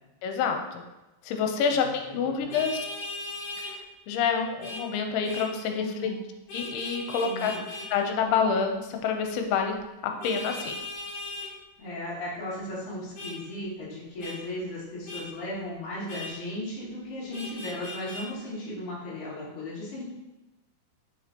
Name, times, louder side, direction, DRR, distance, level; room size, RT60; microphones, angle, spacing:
voice 1, 0.2-0.8 1.2-2.8 4.1-6.1 6.5-7.5 7.9-9.7 10.0-10.8, left 6 dB, 85° left, 4 dB, 3.1 m, -27 dB
voice 2, 1.7-2.6 5.8-6.2 7.2-7.6 11.8-20.0, left 1 dB, 35° left, -8 dB, 2.8 m, -36 dB
Vehicle horn car horn honking, 2.5-3.7 4.6-4.8 5.2-5.5 6.5-7.9 10.2-11.5 13.2-13.4 14.2-14.4 15.1-15.3 16.1-16.3 17.3-18.3, left 2 dB, 60° left, 2.7 m, -37 dB
8.6 x 6.3 x 2.9 m, 1.0 s
omnidirectional pair, 5.3 m